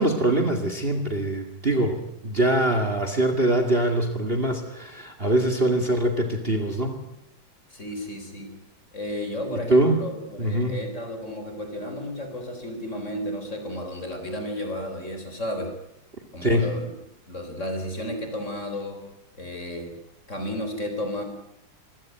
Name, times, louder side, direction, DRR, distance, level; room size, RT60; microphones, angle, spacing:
voice 1, 0.0-7.0 9.5-10.0 10.4-10.8 16.4-16.7, right 1 dB, 25° right, 7 dB, 2.4 m, -23 dB
voice 2, 7.7-8.5 8.9-15.7 16.3-16.9 17.3-19.0 19.3-19.9 20.3-21.2, left 1 dB, 35° left, 6 dB, 4.3 m, -33 dB
25.5 x 16.5 x 9.3 m, 0.83 s
omnidirectional pair, 2.3 m